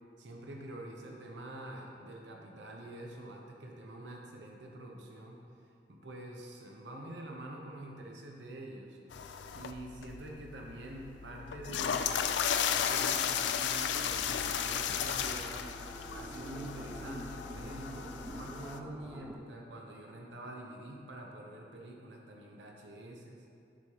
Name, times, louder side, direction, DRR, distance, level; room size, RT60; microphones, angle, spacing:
voice 1, 0.2-5.4 5.9-9.0 9.5-15.5 16.1-23.4, right 1 dB, 85° right, 0 dB, 0.8 m, -46 dB
sound 1, 9.1-18.8, left 8 dB, 85° left, 0.3 m, -35 dB
sound 2, 14.1-19.4, right 1 dB, 10° right, 0.3 m, -47 dB
10.0 x 4.8 x 2.9 m, 2.4 s
head